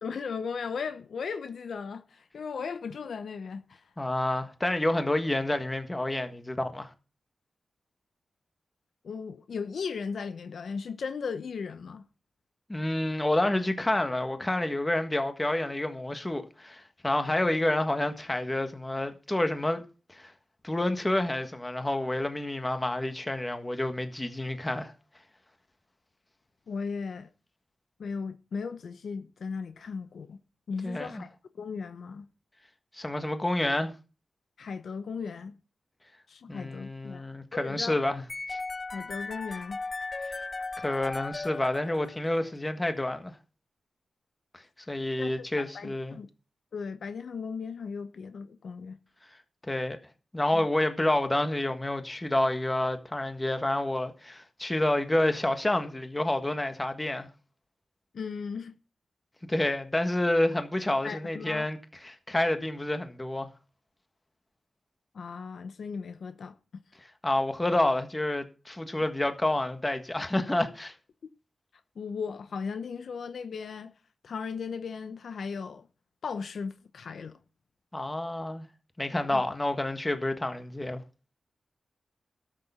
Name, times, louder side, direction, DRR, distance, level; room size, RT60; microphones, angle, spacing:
voice 1, 0.0-3.9 9.0-12.0 26.7-27.3 28.0-30.4 30.7-32.3 34.6-35.5 36.3-37.2 37.5-38.0 38.9-39.8 45.2-46.3 46.7-49.0 50.5-50.6 58.1-58.7 61.0-61.7 65.1-66.5 71.2-71.3 72.0-73.9 74.2-75.9 76.2-77.4 79.3-79.4, left 5 dB, 75° left, 0.9 m, -37 dB
voice 2, 4.0-6.9 12.7-20.3 20.6-24.9 30.8-31.2 32.9-33.9 36.5-38.2 38.5-38.6 40.2-40.4 40.8-43.3 44.9-46.2 49.7-50.0 50.3-57.3 59.5-61.8 62.0-63.5 67.2-70.9 77.9-78.7 79.0-81.0, left 1 dB, 15° left, 1.6 m, -29 dB
sound 1, 38.3-42.4, left 3 dB, 35° left, 0.5 m, -37 dB
13.0 x 7.0 x 5.6 m
wide cardioid pair, 95°, 0 cm